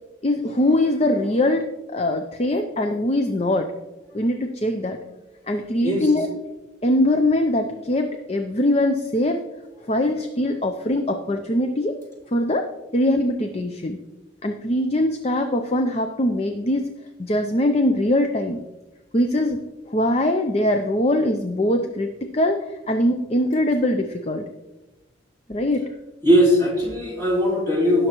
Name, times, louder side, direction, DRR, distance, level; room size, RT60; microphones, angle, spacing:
voice 1, 0.2-3.7 4.1-5.0 5.5-6.3 6.8-9.4 9.9-12.0 12.3-12.7 12.9-14.0 14.4-16.9 17.2-18.6 19.1-19.6 19.9-24.4 25.5-25.9, left 1 dB, 30° left, 6 dB, 0.5 m, -22 dB
voice 2, 26.2-28.1, equal, 15° left, -4 dB, 3.0 m, -19 dB
17.0 x 6.5 x 3.0 m, 1.1 s
head